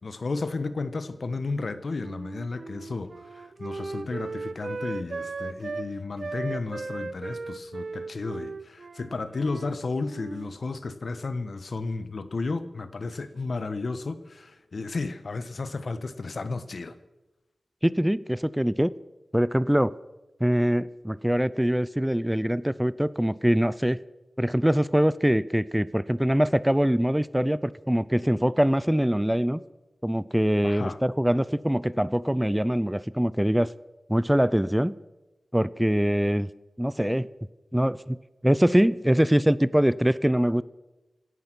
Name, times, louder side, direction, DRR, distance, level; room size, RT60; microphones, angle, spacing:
voice 1, 0.0-17.0 30.6-31.0, left 3 dB, 65° left, 1.2 m, -33 dB
Wind instrument woodwind instrument, 2.0-5.9 6.2-9.8 10.0-10.6, right 3 dB, 60° right, 0.6 m, -37 dB
voice 2, 17.8-18.9 19.3-19.9 20.4-24.0 24.4-29.6 30.0-33.7 34.1-34.9 35.5-36.5 36.8-37.3 37.7-38.2 38.4-40.6, equal, 5° right, 0.5 m, -23 dB
17.0 x 12.5 x 6.1 m
wide cardioid pair, 65°, 0 cm